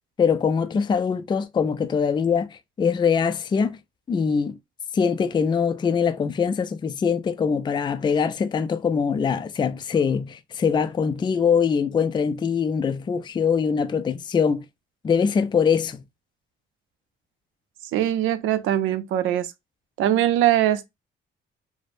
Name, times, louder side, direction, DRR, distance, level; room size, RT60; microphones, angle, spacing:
voice 1, 0.2-3.8 4.1-4.6 4.9-14.6 15.0-16.0, left 6 dB, 25° left, 0.3 m, -23 dB
voice 2, 17.9-19.5 20.0-20.9, right 12 dB, 85° right, 0.4 m, -21 dB
3.1 x 2.0 x 2.5 m
cardioid pair, 90°, 20 cm